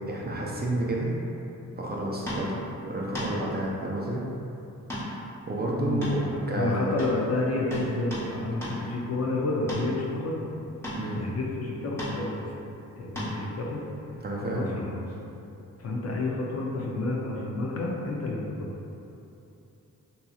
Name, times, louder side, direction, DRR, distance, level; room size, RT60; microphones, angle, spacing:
voice 1, 0.1-1.1 1.8-4.2 5.5-6.2 6.5-6.9 10.9-11.3 14.2-14.9, right 1 dB, 30° right, -4 dB, 0.4 m, -30 dB
sound 1, 2.3-2.5 3.1-3.3 4.9-5.1 5.4-5.5 6.0-6.7 7.0-7.2 7.7-8.3 8.6-8.8 9.7-9.9 10.8-11.1 12.0-12.2 13.1-13.4 15.1-15.2, equal, 5° left, 0.9 m, -34 dB
voice 2, 5.8-10.5 11.1-12.5 13.0-13.8 14.5-15.0 15.8-18.7, left 2 dB, 50° left, -2 dB, 0.5 m, -30 dB
2.7 x 2.7 x 2.3 m, 2.8 s
cardioid pair, 70°, 34 cm